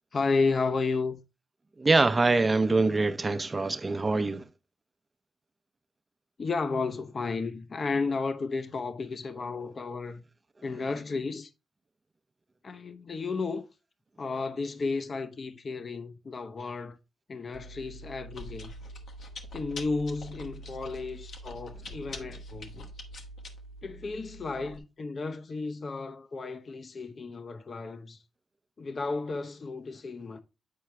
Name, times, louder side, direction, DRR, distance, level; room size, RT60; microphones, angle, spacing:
voice 1, 0.1-1.2 6.4-10.2 10.6-11.5 12.6-13.7 14.2-17.0 17.3-18.7 19.5-22.9 23.8-28.2 28.8-30.4, left 4 dB, 50° left, 0.8 m, -33 dB
voice 2, 1.8-4.4, right 3 dB, 35° right, 0.8 m, -24 dB
Chewing mastication, 17.5-24.8, equal, 70° left, 1.3 m, -44 dB
8.7 x 4.6 x 3.3 m
supercardioid pair, 55°, 0 cm